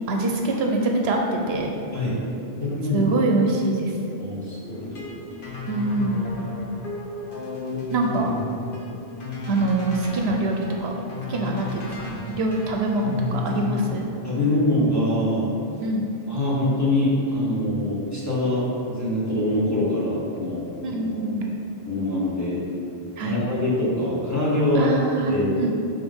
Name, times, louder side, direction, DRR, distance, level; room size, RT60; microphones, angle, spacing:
voice 1, 0.1-1.7 2.9-3.9 5.7-6.3 7.9-8.3 9.5-10.9 11.3-14.1 15.8-16.1 20.8-21.5 23.2-23.4 24.7-25.8, right 2 dB, 75° right, 1 dB, 0.9 m, -24 dB
voice 2, 2.6-3.0 4.2-5.0 14.2-15.5 16.3-21.3 21.8-22.6 23.2-24.9 25.3-25.5, left 1 dB, 15° left, -8 dB, 1.5 m, -24 dB
sound 1, 4.6-14.0, left 3 dB, 55° left, 1.2 m, -33 dB
5.8 x 3.7 x 5.4 m, 2.7 s
omnidirectional pair, 1.1 m